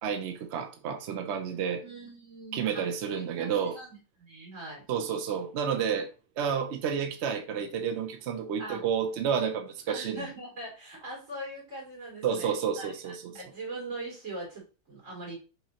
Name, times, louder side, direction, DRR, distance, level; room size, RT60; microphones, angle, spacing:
voice 1, 0.0-1.8 2.5-3.8 4.9-6.1 6.4-10.2 12.2-13.3, right 7 dB, 70° right, 0.6 m, -30 dB
voice 2, 1.8-4.8 8.6-8.8 9.9-15.3, right 2 dB, 45° right, 2.8 m, -42 dB
5.6 x 3.1 x 2.8 m
omnidirectional pair, 1.8 m